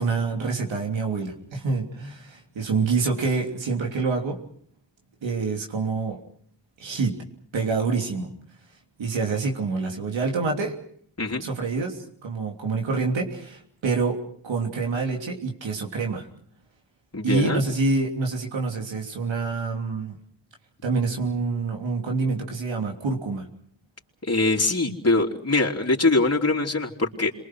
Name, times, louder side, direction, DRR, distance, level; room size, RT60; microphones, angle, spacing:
voice 1, 0.0-4.4 5.2-6.2 6.8-7.2 7.5-8.3 9.0-10.7 11.4-14.2 14.4-16.3 17.2-20.2 20.8-23.5, right 4 dB, 90° right, 2 dB, 3.3 m, -26 dB
voice 2, 17.1-17.6 24.2-27.3, left 2 dB, 35° left, 0 dB, 3.6 m, -23 dB
27.5 x 23.5 x 6.2 m, 0.62 s
cardioid pair, 50°, 44 cm